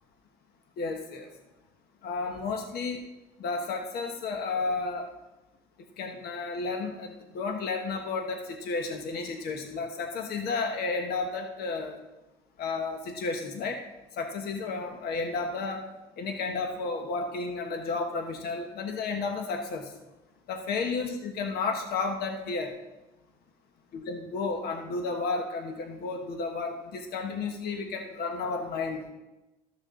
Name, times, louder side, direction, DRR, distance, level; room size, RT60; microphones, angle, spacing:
voice 1, 0.8-1.3 2.0-3.0 3.4-5.1 6.0-12.0 12.6-13.8 14.1-15.9 16.2-19.9 20.5-22.7 23.9-29.1, left 4 dB, 70° left, 4 dB, 1.2 m, -32 dB
13.5 x 6.6 x 3.8 m, 1.0 s
cardioid pair, 110°, 17 cm